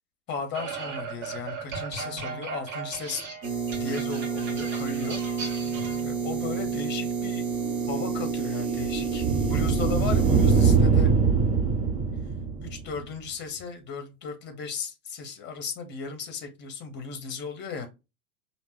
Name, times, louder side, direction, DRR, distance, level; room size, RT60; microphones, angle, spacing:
voice 1, 0.3-3.2 3.5-3.6 3.8-5.2 6.0-7.5 7.9-11.1 12.6-17.9, left 5 dB, 25° left, 1.1 m, -36 dB
sound 1, 0.5-6.0, right 4 dB, 60° right, 1.4 m, -37 dB
sound 2, 3.4-10.8, right 6 dB, 40° right, 1.6 m, -30 dB
sound 3, 7.4-13.0, right 5 dB, 15° right, 0.5 m, -23 dB
5.1 x 2.8 x 3.1 m
figure-of-eight pair, 90°, 44 cm